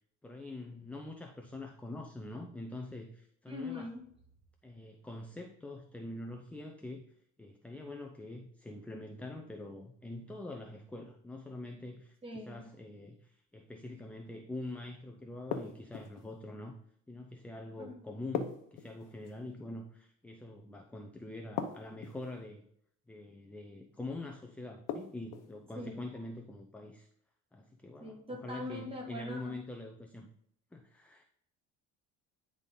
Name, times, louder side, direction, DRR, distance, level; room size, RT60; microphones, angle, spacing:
voice 1, 0.2-3.9 4.6-7.0 7.4-16.7 17.1-22.6 23.1-27.1 27.5-30.3 30.7-31.2, left 2 dB, 5° left, 3 dB, 0.5 m, -44 dB
voice 2, 3.5-4.0 12.2-12.7 17.8-18.1 25.8-26.0 28.0-29.6, left 1 dB, 15° right, 0 dB, 1.8 m, -42 dB
sound 1, 15.5-16.3 18.3-19.4 21.6-22.3 24.9-25.5, left 7 dB, 80° left, 0.9 m, -38 dB
9.9 x 3.7 x 3.8 m, 0.68 s
cardioid pair, 135°, 31 cm